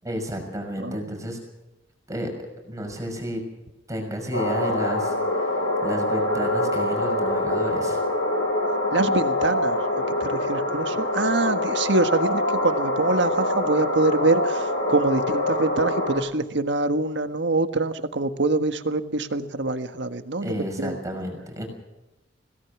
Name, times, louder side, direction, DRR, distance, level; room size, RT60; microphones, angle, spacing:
voice 1, 0.0-1.4 2.1-3.4 3.9-8.0 20.4-21.7, equal, 20° right, 3 dB, 6.1 m, -32 dB
voice 2, 0.8-1.2 8.9-9.8 10.1-21.0, right 2 dB, 65° right, 8 dB, 1.6 m, -25 dB
sound 1, 4.3-16.2, left 1 dB, 75° left, 6.4 m, -25 dB
26.0 x 18.0 x 6.1 m, 1.0 s
head